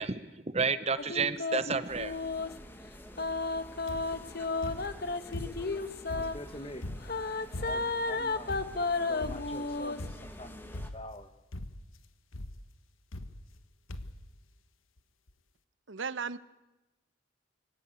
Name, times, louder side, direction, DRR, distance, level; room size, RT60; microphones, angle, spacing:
voice 1, 0.0-2.1, right 5 dB, 30° right, 13 dB, 0.9 m, -31 dB
sound 1, 1.0-2.5 3.2-6.3 7.0-10.1, left 3 dB, 50° left, 1.2 m, -33 dB
sound 2, 1.9-10.9, equal, 10° left, 1.7 m, -49 dB
sound 3, 3.9-4.3 4.6-5.8 6.1-8.0 8.5-8.9 9.2-9.6 10.0-10.4 10.7-11.2 11.5-12.0 12.3-12.6 13.1-13.6 13.9-14.3 15.0-15.1 15.3-15.4, left 1 dB, 85° left, 1.3 m, -41 dB
voice 2, 6.0-6.9 7.6-8.6 8.9-11.3, left 1 dB, 30° left, 10 dB, 1.5 m, -46 dB
voice 3, 15.9-16.4, right 5 dB, 70° right, 15 dB, 0.8 m, -35 dB
24.0 x 17.0 x 9.5 m, 1.0 s
head